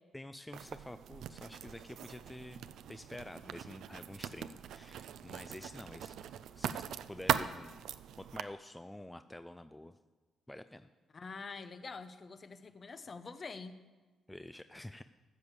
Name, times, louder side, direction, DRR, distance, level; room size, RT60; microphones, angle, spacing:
voice 1, 0.1-6.2 6.6-7.8 8.2-10.0 10.5-10.9 14.3-15.0, left 1 dB, 10° left, 11 dB, 0.4 m, -48 dB
Writing, 0.5-8.4, right 9 dB, 80° right, 0.5 m, -40 dB
voice 2, 11.1-13.7, left 4 dB, 40° left, 11 dB, 0.8 m, -46 dB
13.0 x 7.0 x 8.1 m, 1.3 s
cardioid pair, 90°, 0 cm